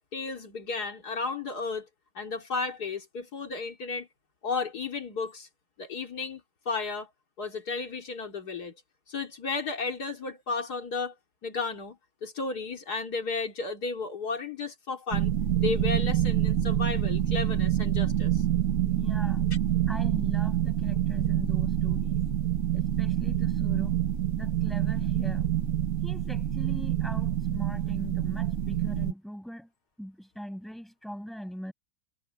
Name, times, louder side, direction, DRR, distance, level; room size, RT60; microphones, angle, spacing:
voice 1, 0.1-1.9 2.1-4.1 4.4-5.5 5.8-7.1 7.4-8.7 9.1-11.1 11.4-15.3 15.6-18.4, left 4 dB, 80° left, 3.2 m, -33 dB
sound 1, 15.1-29.1, right 11 dB, 55° right, 1.6 m, -27 dB
voice 2, 18.8-19.4 19.9-22.2 22.7-24.0 24.3-25.5 26.0-29.7 30.0-31.7, equal, ahead, 6.3 m, -40 dB
omnidirectional pair, 1.7 m